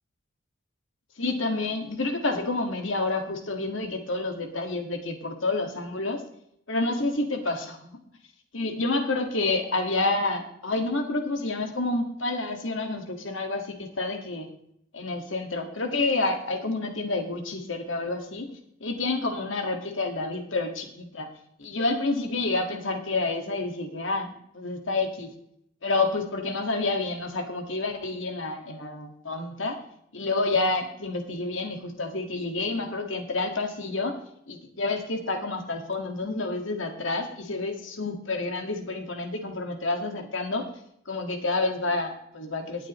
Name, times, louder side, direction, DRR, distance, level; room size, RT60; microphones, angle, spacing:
voice 1, 1.2-6.2 6.7-8.0 8.5-14.5 14.9-18.5 18.8-21.3 21.6-25.3 25.8-29.8 30.1-34.2 34.5-40.7 41.1-42.9, left 2 dB, 75° left, 4 dB, 1.9 m, -29 dB
19.0 x 8.6 x 3.1 m, 0.71 s
head